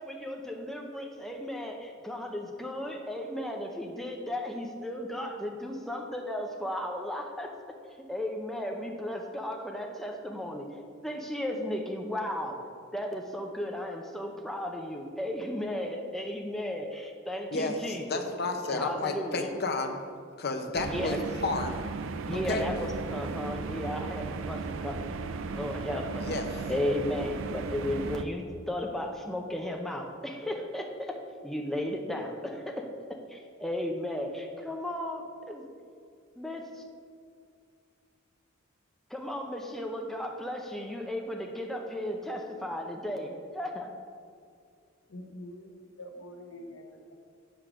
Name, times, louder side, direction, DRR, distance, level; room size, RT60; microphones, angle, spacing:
voice 1, 0.0-7.5 8.1-10.7 11.0-12.6 12.9-18.2 18.7-19.5 20.9-21.2 22.3-26.2 26.7-31.1 31.4-32.8 33.3-35.6 36.4-36.8 39.1-43.9, left 1 dB, ahead, 1 dB, 0.5 m, -35 dB
voice 2, 17.5-20.0 20.4-21.8 22.3-22.7 26.3-26.6, left 3 dB, 50° left, 5 dB, 0.8 m, -32 dB
sound 1, 20.7-28.2, right 4 dB, 70° right, 0.4 m, -36 dB
voice 3, 45.1-47.1, left 1 dB, 80° left, 3 dB, 1.0 m, -45 dB
7.8 x 5.0 x 6.1 m, 2.3 s
head